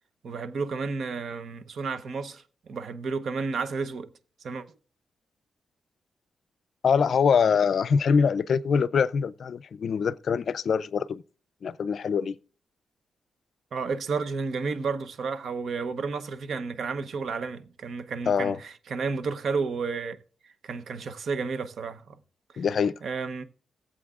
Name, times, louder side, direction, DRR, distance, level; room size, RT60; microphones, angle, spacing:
voice 1, 0.2-4.1 4.4-4.7 13.7-20.2 20.4-22.2 22.5-22.6 23.0-23.4, right 4 dB, 65° right, 0.8 m, -32 dB
voice 2, 6.8-11.2 11.6-12.4 18.3-18.6 22.6-22.9, left 6 dB, 60° left, 0.4 m, -24 dB
18.0 x 7.7 x 2.4 m
wide cardioid pair, 125°, 0 cm